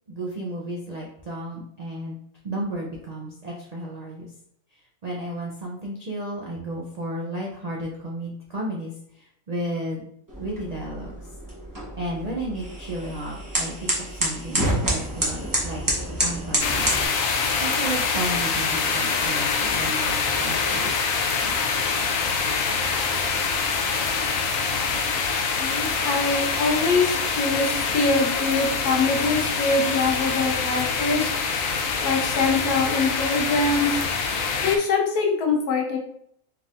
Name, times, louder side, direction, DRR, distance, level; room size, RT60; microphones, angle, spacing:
voice 1, 0.1-2.2 2.4-4.3 5.0-8.9 9.5-10.1 10.4-11.1 12.0-15.8 16.2-16.9 17.6-20.9, right 1 dB, 90° right, -2 dB, 0.3 m, -33 dB
sound 1, 10.3-17.1, right 1 dB, 20° right, 0.7 m, -28 dB
sound 2, 16.6-34.8, left 5 dB, 70° left, 1.0 m, -25 dB
voice 2, 25.6-31.3 32.0-34.0 34.6-36.0, left 3 dB, 85° left, 1 dB, 1.4 m, -23 dB
4.6 x 3.5 x 2.4 m, 0.69 s
omnidirectional pair, 1.6 m